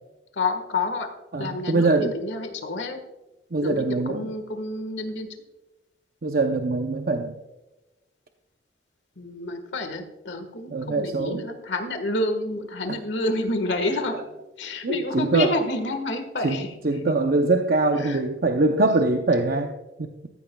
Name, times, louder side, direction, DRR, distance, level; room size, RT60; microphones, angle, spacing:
voice 1, 0.3-1.1 1.4-3.0 3.6-5.3 9.2-14.2 14.6-17.0 18.0-18.2, left 2 dB, 85° left, 6 dB, 1.5 m, -29 dB
voice 2, 1.3-2.1 3.5-4.3 6.2-7.4 10.7-11.4 12.9-13.0 14.8-15.5 16.4-20.1, right 2 dB, 55° right, 5 dB, 0.7 m, -23 dB
14.5 x 14.0 x 2.3 m, 1.1 s
head